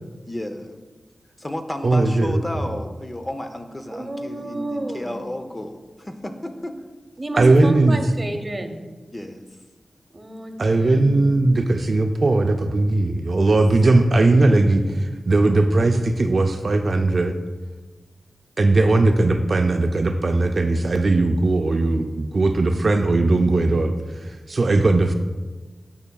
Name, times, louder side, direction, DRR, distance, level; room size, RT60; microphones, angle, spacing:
voice 1, 0.3-0.8 1.4-6.8 9.1-9.5 13.5-13.6 13.8-14.2, left 1 dB, 25° left, 7 dB, 0.6 m, -32 dB
voice 2, 1.8-2.4 7.4-8.0 10.6-17.3 18.6-25.1, right 2 dB, 55° right, 5 dB, 0.4 m, -18 dB
voice 3, 3.9-5.1 7.2-8.8 10.1-11.3, right 1 dB, 35° right, 6 dB, 0.9 m, -31 dB
12.5 x 5.7 x 2.3 m, 1.3 s
cardioid pair, 65°, 0 cm